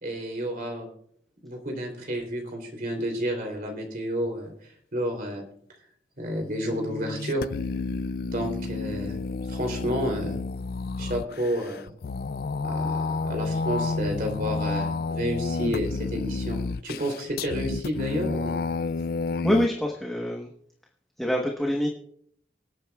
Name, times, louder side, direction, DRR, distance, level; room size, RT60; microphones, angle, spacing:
voice 1, 0.0-0.9 1.4-5.4 6.2-7.5 8.3-9.2 9.5-10.4 11.0-11.9 12.6-18.6, equal, 50° right, 3 dB, 3.2 m, -31 dB
sound 1, 6.4-19.7, left 4 dB, 60° left, 0.3 m, -30 dB
voice 2, 19.4-20.5 21.2-21.9, equal, ahead, -1 dB, 1.1 m, -25 dB
25.0 x 8.8 x 2.3 m, 0.67 s
head